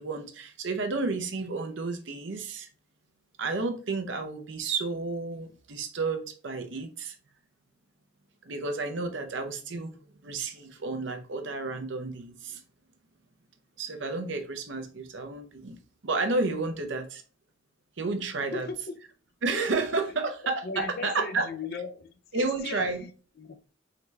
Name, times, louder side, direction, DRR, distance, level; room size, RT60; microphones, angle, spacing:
voice 1, 0.0-2.7 3.4-7.2 8.4-12.6 13.8-15.8 16.0-17.2 18.0-18.7 19.4-21.5 22.3-23.0, right 3 dB, 70° right, 0.7 m, -31 dB
voice 2, 18.4-19.0 19.9-20.1 20.4-23.1 23.4-23.6, left 4 dB, 55° left, 0.4 m, -38 dB
3.9 x 3.3 x 3.2 m
head